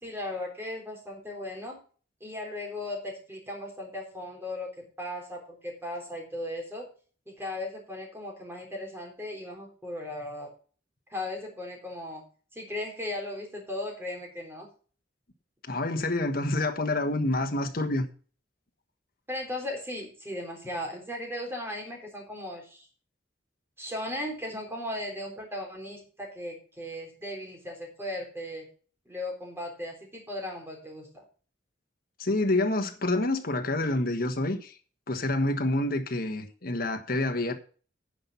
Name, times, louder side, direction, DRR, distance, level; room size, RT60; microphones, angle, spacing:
voice 1, 0.0-1.8 2.2-6.9 7.3-10.5 11.1-12.2 12.5-14.7 19.3-22.9 23.8-28.7 29.1-31.1, left 1 dB, 15° right, 3.8 m, -37 dB
voice 2, 15.7-18.0 32.2-34.7 35.1-37.5, left 2 dB, 50° left, 1.4 m, -27 dB
10.5 x 5.8 x 6.9 m
head